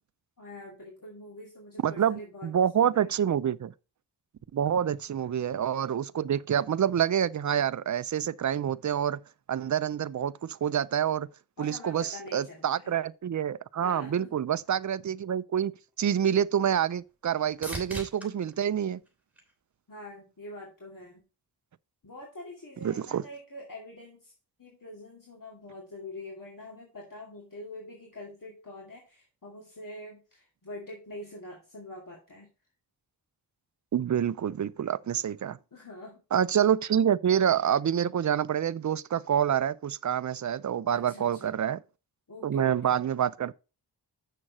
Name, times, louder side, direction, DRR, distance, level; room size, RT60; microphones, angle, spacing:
voice 1, 0.4-2.5 2.8-3.1 11.6-13.0 13.8-14.4 19.9-21.2 22.0-24.3 24.6-32.5 35.7-36.2 40.9-41.6 42.3-43.0, left 2 dB, 50° left, 2.4 m, -45 dB
voice 2, 1.8-3.7 4.5-9.2 9.5-11.3 11.6-15.7 16.0-19.0 22.8-23.2 33.9-35.6 36.3-41.8 42.4-43.5, right 9 dB, 45° right, 0.5 m, -27 dB
sound 1, 15.9-20.1 20.6-21.2 29.0-29.1, right 1 dB, 5° right, 3.0 m, -45 dB
7.5 x 6.3 x 4.1 m
wide cardioid pair, 70°, 42 cm